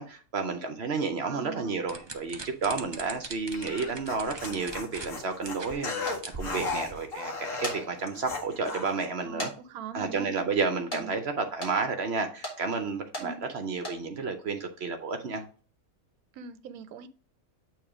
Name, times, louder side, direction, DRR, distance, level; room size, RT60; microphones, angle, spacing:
voice 1, 0.0-9.5 9.9-15.4, right 4 dB, 55° right, 0.8 m, -31 dB
voice 2, 1.3-1.8 9.2-10.3 10.9-11.1 13.2-13.5 16.3-17.1, right 6 dB, 80° right, 1.1 m, -41 dB
sound 1, 1.9-5.1 5.4-5.7 6.0-7.0, right 3 dB, 35° right, 0.4 m, -41 dB
sound 2, 3.5-9.1, left 3 dB, 60° left, 1.5 m, -36 dB
sound 3, 6.1-6.2 7.4-7.8 8.4-8.5 9.4-9.5 9.8-9.9 10.9-11.0 11.6-11.7 12.4-12.6 13.1-13.3 13.7-14.0, left 1 dB, 35° left, 1.9 m, -35 dB
8.8 x 3.0 x 4.8 m
omnidirectional pair, 1.5 m